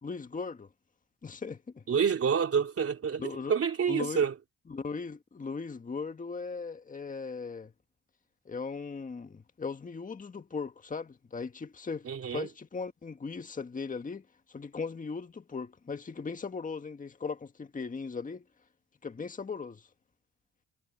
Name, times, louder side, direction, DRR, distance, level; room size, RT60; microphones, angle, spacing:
voice 1, 0.0-0.7 1.2-1.8 3.2-3.5 3.9-4.2 4.7-7.7 8.4-18.4 19.0-19.9, left 4 dB, 25° left, 1.6 m, -38 dB
voice 2, 1.9-3.2 3.5-4.3 12.0-12.5, right 7 dB, 50° right, 3.2 m, -27 dB
cardioid pair, 90°, 30 cm